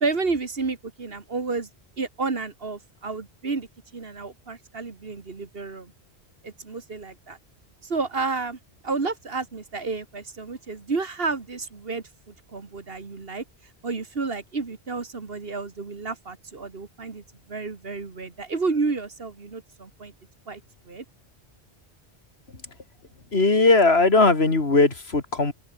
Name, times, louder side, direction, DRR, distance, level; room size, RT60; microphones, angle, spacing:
voice 1, 0.0-1.7 2.0-5.9 6.4-7.4 7.8-8.6 8.8-13.4 13.8-20.1 20.5-20.6 20.9-21.0, right 4 dB, 60° right, 2.1 m, -31 dB
voice 2, 23.3-25.5, left 3 dB, 70° left, 3.1 m, -18 dB
open air
omnidirectional pair, 1.1 m